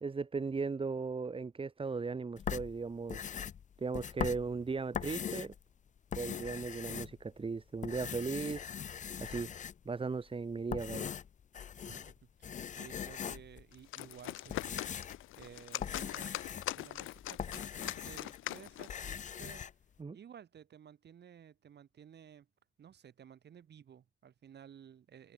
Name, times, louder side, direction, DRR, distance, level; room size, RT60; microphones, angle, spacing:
voice 1, 0.0-3.3 3.8-5.5 6.1-8.7 9.2-9.5 9.8-11.1 20.0-20.2, right 4 dB, 25° right, 1.6 m, -37 dB
sound 1, 2.4-5.6 6.0-7.5 7.8-10.0 10.5-12.2 12.4-13.6 14.2-18.4 18.7-19.7, left 8 dB, 40° left, 0.6 m, -41 dB
voice 2, 11.8-14.9 15.4-16.4 16.7-19.6 20.1-22.5 22.8-25.3, right 8 dB, 60° right, 5.0 m, -55 dB
sound 2, 13.7-19.0, left 15 dB, 85° left, 2.0 m, -42 dB
cardioid pair, 90°, 20 cm